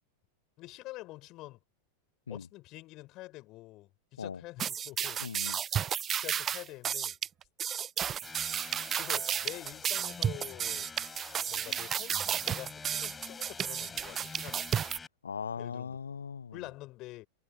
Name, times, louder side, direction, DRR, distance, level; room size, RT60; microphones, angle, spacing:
voice 1, 0.6-1.6 2.3-5.2 5.7-5.8 6.2-7.1 9.0-10.9 11.5-14.7 15.6-16.0 16.5-17.3, left 19 dB, 40° left, 6.9 m, -47 dB
sound 1, 4.6-15.0, right 9 dB, 25° right, 0.4 m, -33 dB
voice 2, 5.2-5.6 15.2-16.6, left 6 dB, 70° left, 0.5 m, -39 dB
sound 2, 8.2-15.1, left 4 dB, 15° left, 7.5 m, -47 dB
figure-of-eight pair, 90°, 0 cm